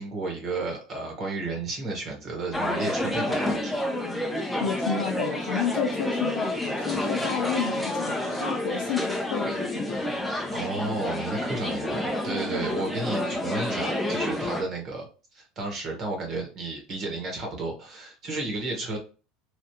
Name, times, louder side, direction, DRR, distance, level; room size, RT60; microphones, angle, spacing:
voice 1, 0.0-3.8 6.8-7.0 10.5-15.1 15.3-19.0, right 3 dB, 45° right, 1.4 m, -32 dB
sound 1, 2.5-14.6, left 1 dB, 5° left, 0.6 m, -29 dB
voice 2, 4.6-10.1, left 7 dB, 75° left, 0.5 m, -31 dB
3.2 x 2.4 x 2.9 m
supercardioid pair, 130°, 0 cm